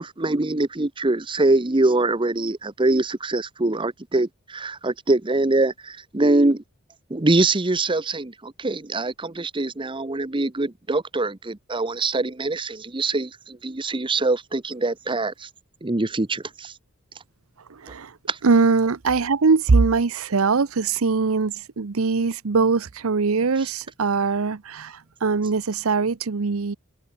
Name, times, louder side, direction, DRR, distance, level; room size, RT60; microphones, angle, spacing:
voice 1, 0.0-6.6 7.1-15.5 15.8-16.7 18.3-18.4, right 2 dB, 25° right, 0.9 m, -23 dB
voice 2, 17.7-18.2 18.4-26.8, right 4 dB, 70° right, 0.7 m, -21 dB
open air
head